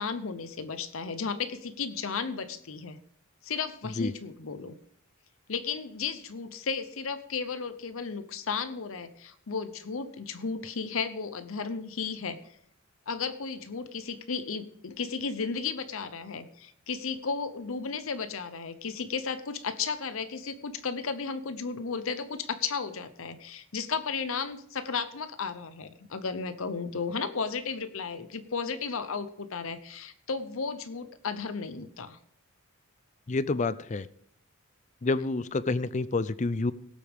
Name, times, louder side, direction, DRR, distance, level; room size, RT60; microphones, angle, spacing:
voice 1, 0.0-3.0 3.4-4.7 5.5-12.4 13.1-32.2, left 5 dB, 70° left, 11 dB, 0.8 m, -34 dB
voice 2, 33.3-34.1 35.0-36.7, left 3 dB, 35° left, 16 dB, 0.4 m, -28 dB
18.5 x 8.4 x 3.6 m, 0.66 s
head